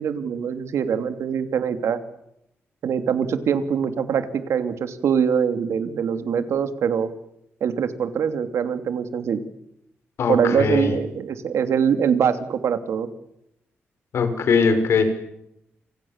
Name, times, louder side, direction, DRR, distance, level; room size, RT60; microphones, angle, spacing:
voice 1, 0.0-2.0 2.8-7.1 7.6-9.4 10.3-13.1, right 7 dB, 85° right, 9 dB, 2.9 m, -23 dB
voice 2, 10.2-10.9 14.1-15.1, left 5 dB, 70° left, 8 dB, 5.5 m, -20 dB
29.5 x 27.0 x 7.4 m, 0.81 s
wide cardioid pair, 150°, 5 cm